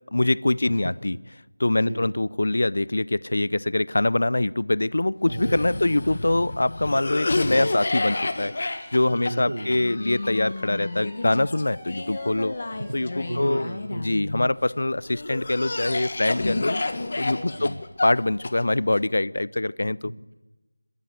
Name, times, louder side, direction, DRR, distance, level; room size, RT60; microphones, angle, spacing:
voice 1, 0.1-1.2 1.6-8.5 8.9-12.5 12.9-13.7 14.0-16.8 17.2-20.1, left 2 dB, 65° left, 21 dB, 0.6 m, -24 dB
voice 2, 0.6-0.9 1.8-2.1 5.2-6.2 9.1-9.8 13.3-14.2 17.5-17.8 20.0-20.3, right 1 dB, 80° right, 7 dB, 1.5 m, -34 dB
Cough, 5.3-14.5 15.1-19.0, left 2 dB, 45° left, 1.6 m, -30 dB
sound 1, 7.2-13.7, equal, 5° right, 4.7 m, -47 dB
26.0 x 13.5 x 8.2 m, 1.1 s
figure-of-eight pair, 170°, 0 cm